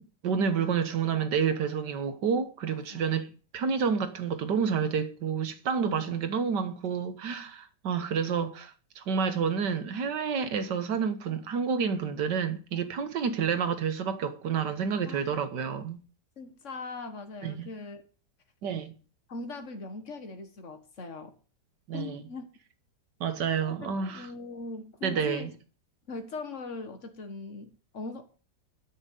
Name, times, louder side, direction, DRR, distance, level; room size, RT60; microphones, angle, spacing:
voice 1, 0.2-16.0 17.4-17.7 18.6-18.9 21.9-22.2 23.2-24.3 25.0-25.5, right 6 dB, 75° right, 1.9 m, -29 dB
voice 2, 15.0-15.4 16.4-18.0 19.3-21.3 21.9-22.5 23.8-25.6 26.1-28.2, left 3 dB, 45° left, 1.9 m, -40 dB
12.0 x 6.6 x 6.7 m
omnidirectional pair, 1.9 m